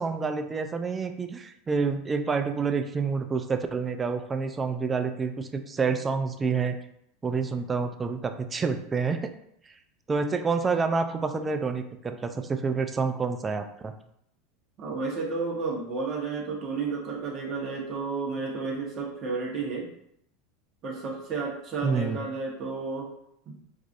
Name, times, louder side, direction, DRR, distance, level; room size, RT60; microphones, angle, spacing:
voice 1, 0.0-6.8 7.2-9.3 10.1-13.9 21.8-22.2, right 5 dB, 20° right, 7 dB, 0.4 m, -28 dB
voice 2, 14.8-19.9 20.8-23.1 23.5-23.6, right 4 dB, 40° right, -3 dB, 1.0 m, -32 dB
4.7 x 2.5 x 2.5 m, 0.74 s
supercardioid pair, 110°, 0 cm